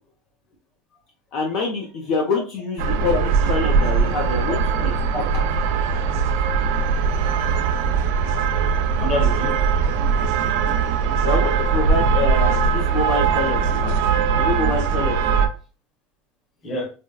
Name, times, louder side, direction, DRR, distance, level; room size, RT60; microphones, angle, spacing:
voice 1, 1.3-4.9 11.2-14.0 14.3-15.2, left 4 dB, 45° left, -1 dB, 0.6 m, -26 dB
sound 1, 2.8-15.5, right 6 dB, 60° right, 0.4 m, -20 dB
voice 2, 4.8-5.2 8.2-8.6 9.0-9.6 10.8-10.9 16.6-16.9, left 2 dB, 20° left, 0 dB, 0.9 m, -28 dB
4.2 x 2.1 x 2.3 m, 0.36 s
supercardioid pair, 175°, 0 cm